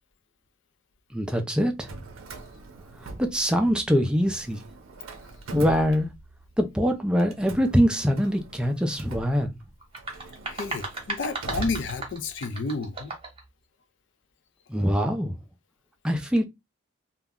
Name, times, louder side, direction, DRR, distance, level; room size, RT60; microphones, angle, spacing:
voice 1, 1.1-1.9 3.0-4.6 5.5-6.1 6.6-9.5 14.7-15.4 16.0-16.4, equal, 5° right, 0.3 m, -23 dB
Drawer open or close, 1.7-3.9 4.2-6.6 7.2-12.5, right 3 dB, 85° right, 0.5 m, -42 dB
sound 1, 9.8-13.4, right 2 dB, 25° right, 0.8 m, -36 dB
voice 2, 10.5-13.1, left 3 dB, 60° left, 0.4 m, -31 dB
2.2 x 2.1 x 3.5 m
head